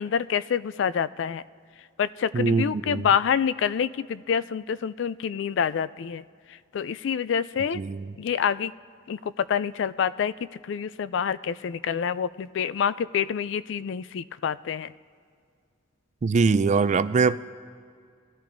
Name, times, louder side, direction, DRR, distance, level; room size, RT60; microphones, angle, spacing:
voice 1, 0.0-1.4 2.0-6.2 6.7-7.8 8.2-8.7 9.1-14.9, left 7 dB, 60° left, 16 dB, 0.3 m, -27 dB
voice 2, 2.3-3.1 7.7-8.1 16.2-17.4, right 4 dB, 35° right, 15 dB, 0.3 m, -22 dB
21.0 x 13.5 x 2.6 m, 2.2 s
head